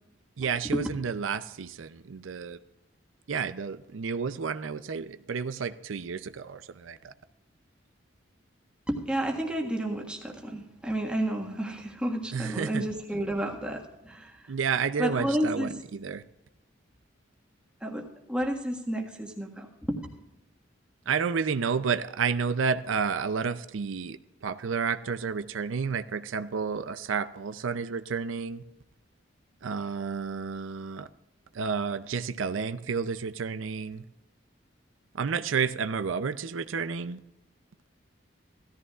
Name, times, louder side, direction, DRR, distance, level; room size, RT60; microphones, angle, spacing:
voice 1, 0.4-2.6 3.3-7.1 12.3-12.8 14.5-16.2 21.1-28.6 29.6-31.1 31.5-34.0 35.1-37.2, right 5 dB, 90° right, 12 dB, 0.5 m, -31 dB
voice 2, 8.9-14.5 15.0-15.7 17.8-20.0, right 1 dB, 5° right, 1 dB, 1.6 m, -31 dB
16.5 x 14.0 x 2.4 m, 0.95 s
head